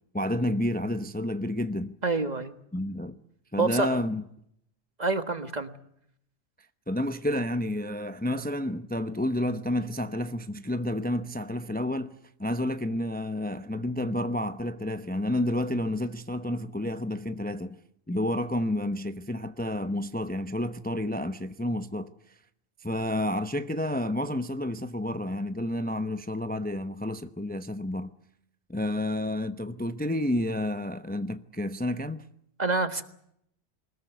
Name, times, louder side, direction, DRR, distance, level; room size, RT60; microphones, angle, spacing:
voice 1, 0.1-1.9 2.7-3.2 3.5-4.2 6.9-12.1 12.4-17.8 18.1-22.3 22.8-28.1 28.7-32.2, left 1 dB, 10° left, 0.8 m, -30 dB
voice 2, 2.0-2.5 3.6-4.0 5.0-5.7 32.6-33.0, right 3 dB, 40° right, 1.7 m, -27 dB
23.5 x 21.0 x 8.1 m
omnidirectional pair, 1.2 m